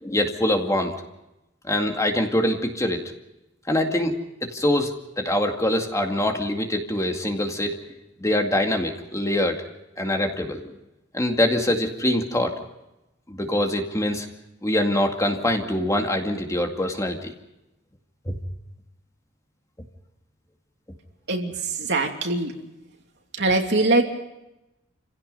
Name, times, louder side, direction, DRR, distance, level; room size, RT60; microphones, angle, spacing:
voice 1, 0.0-0.9 1.6-3.0 3.7-7.8 8.2-9.6 10.0-10.6 11.1-12.5 13.3-14.3 14.6-17.3 18.3-18.4, left 1 dB, 15° left, 3 dB, 2.2 m, -24 dB
voice 2, 21.3-22.5 23.3-24.0, right 2 dB, 60° right, 2 dB, 2.9 m, -22 dB
28.5 x 16.5 x 5.5 m, 0.93 s
head